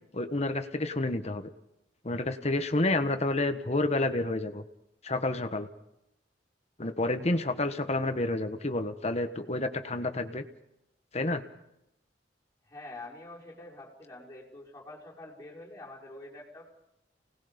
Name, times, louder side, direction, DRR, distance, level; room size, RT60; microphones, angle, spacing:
voice 1, 0.1-1.5 2.0-4.6 5.0-5.7 6.8-10.4 11.1-11.4, left 2 dB, 40° left, 8 dB, 1.5 m, -29 dB
voice 2, 12.7-16.7, left 2 dB, 20° left, -4 dB, 5.5 m, -46 dB
29.0 x 19.5 x 5.3 m, 0.86 s
head